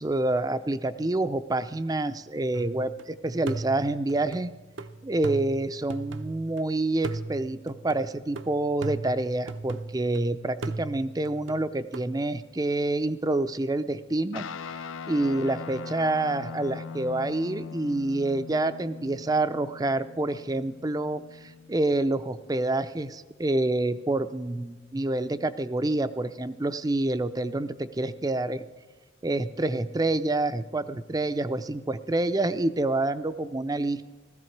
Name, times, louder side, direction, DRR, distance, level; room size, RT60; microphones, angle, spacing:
voice 1, 0.0-4.5 5.0-14.5 15.1-28.6 29.2-34.1, right 2 dB, 20° right, 13 dB, 0.4 m, -27 dB
sound 1, 2.5-3.0 3.5-6.6 7.0-10.2 10.6-12.1, right 3 dB, 65° right, 0.6 m, -37 dB
Guitar, 14.3-22.0, left 5 dB, 75° left, 0.5 m, -40 dB
16.5 x 15.0 x 4.6 m, 1.3 s
head